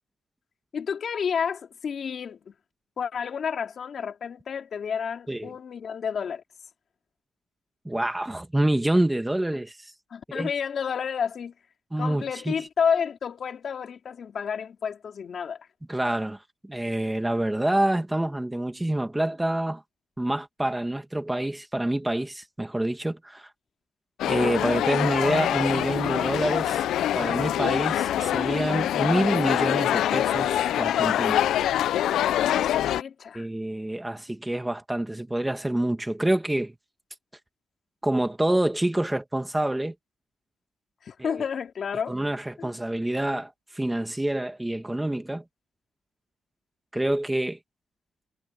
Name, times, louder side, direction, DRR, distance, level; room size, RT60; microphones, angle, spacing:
voice 1, 0.7-2.5 3.0-6.4 10.1-11.5 12.0-15.7 32.5-33.5 41.0-42.2 42.6-42.7, left 7 dB, 50° left, 3.6 m, -30 dB
voice 2, 7.9-9.9 10.3-10.5 11.9-12.5 15.9-19.8 20.2-23.5 24.3-26.8 27.1-31.4 33.3-36.7 38.0-39.9 41.2-41.3 42.1-45.4 46.9-47.6, right 1 dB, 10° right, 2.0 m, -27 dB
sound 1, 24.2-33.0, left 11 dB, 85° left, 0.6 m, -24 dB
cardioid pair, 130°, 0 cm